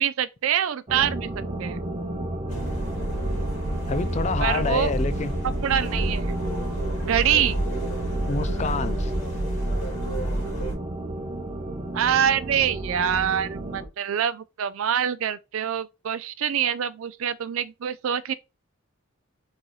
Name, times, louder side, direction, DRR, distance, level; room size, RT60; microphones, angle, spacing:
voice 1, 0.0-1.8 4.4-4.9 5.4-6.3 7.1-7.7 11.9-18.3, right 9 dB, 70° right, 0.4 m, -25 dB
sound 1, 0.9-13.9, right 1 dB, 30° right, 0.8 m, -33 dB
sound 2, 2.5-10.7, right 1 dB, 55° left, 2.6 m, -29 dB
voice 2, 3.9-5.3 8.2-9.1, left 4 dB, 35° left, 0.4 m, -27 dB
4.1 x 3.8 x 3.1 m
head